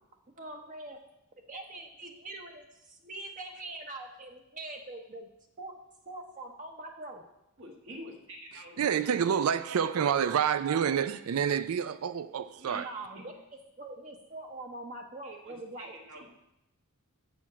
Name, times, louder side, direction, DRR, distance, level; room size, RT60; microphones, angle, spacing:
voice 1, 0.4-1.0 1.5-5.3 5.6-5.8 6.1-7.3 12.6-13.3 13.8-15.9, right 2 dB, 40° right, 2 dB, 0.9 m, -43 dB
voice 2, 7.6-8.9 12.6-13.3 15.2-16.3, right 1 dB, 65° right, 0 dB, 1.3 m, -47 dB
voice 3, 8.8-12.9, right 8 dB, 80° right, 14 dB, 0.4 m, -28 dB
7.1 x 5.8 x 7.3 m, 0.86 s
head